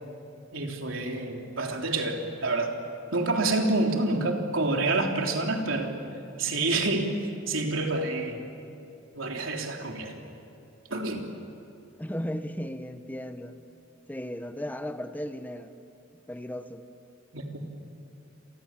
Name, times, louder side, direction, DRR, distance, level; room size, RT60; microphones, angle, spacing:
voice 1, 0.5-2.8 3.1-5.9 6.4-8.5 9.1-10.2 10.9-11.3 17.3-17.6, right 2 dB, 85° right, 2 dB, 3.5 m, -28 dB
voice 2, 12.0-13.6 14.1-15.7 16.3-16.8, equal, 10° left, 9 dB, 1.0 m, -35 dB
29.0 x 25.0 x 7.5 m, 2.7 s
head